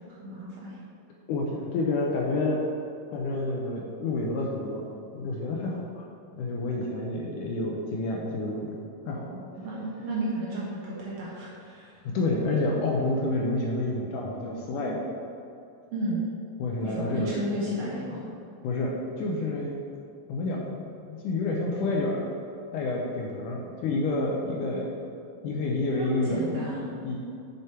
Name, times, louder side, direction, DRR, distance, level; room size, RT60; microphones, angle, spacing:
voice 1, 0.2-0.8 9.1-12.0 15.9-16.2 16.8-18.3 26.0-26.9, right 1 dB, 55° right, -7 dB, 2.0 m, -33 dB
voice 2, 1.3-2.6 3.1-4.8 5.1-6.0 6.3-8.8 9.1-9.3 12.0-15.0 16.6-17.4 18.6-19.8 20.3-20.8 21.1-22.3 22.7-24.9 25.4-26.6 27.0-27.2, left 2 dB, 75° left, -2 dB, 2.0 m, -29 dB
7.1 x 6.9 x 4.4 m, 2.5 s
omnidirectional pair, 4.3 m